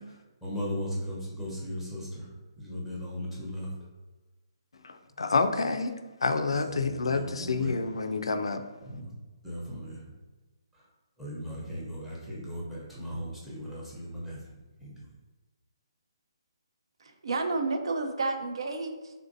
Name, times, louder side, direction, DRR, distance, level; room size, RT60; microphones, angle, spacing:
voice 1, 0.0-2.3 2.6-3.7 6.4-7.7 8.8-9.1 9.4-10.1 10.7-10.8 11.2-14.4 14.8-14.9, equal, 5° right, -6 dB, 0.7 m, -37 dB
voice 2, 4.8-5.9 6.2-8.6, left 4 dB, 85° left, 8 dB, 0.3 m, -28 dB
voice 3, 17.0-19.1, right 3 dB, 75° right, 6 dB, 0.4 m, -31 dB
3.5 x 2.5 x 2.6 m, 1.2 s
hypercardioid pair, 155°, 3 cm